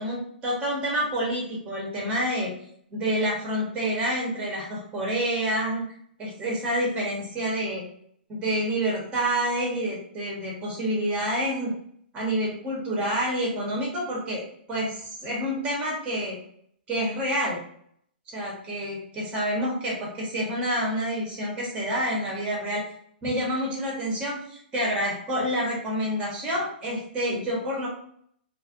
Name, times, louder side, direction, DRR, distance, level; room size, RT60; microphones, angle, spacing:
voice 1, 0.0-2.5 2.9-5.8 6.2-7.8 8.3-11.7 12.1-14.4 14.7-16.4 16.9-17.6 18.3-22.8 23.2-27.9, equal, 20° right, -3 dB, 1.0 m, -28 dB
2.4 x 2.2 x 2.4 m, 0.66 s
hypercardioid pair, 130°, 6 cm